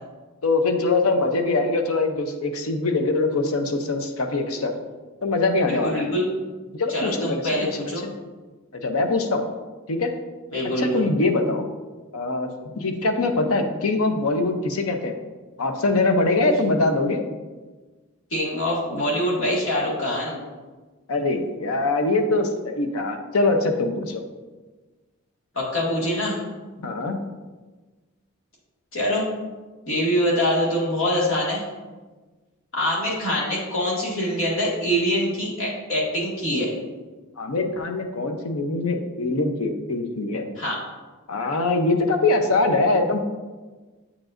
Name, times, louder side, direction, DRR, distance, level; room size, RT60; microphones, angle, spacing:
voice 1, 0.4-4.7 5.2-6.0 6.7-7.4 8.0-8.1 8.7-9.4 9.9-10.1 10.8-11.7 12.1-12.5 12.7-15.2 15.6-17.3 21.1-24.2 26.8-27.2 37.4-40.5 41.3-43.2, left 2 dB, 80° left, 6 dB, 0.7 m, -23 dB
voice 2, 5.6-6.2 6.9-8.0 10.5-11.0 18.3-20.4 25.5-26.4 28.9-29.3 29.9-31.6 32.7-36.7 40.6-40.8, equal, 65° left, -5 dB, 2.0 m, -24 dB
8.3 x 4.9 x 2.5 m, 1.3 s
head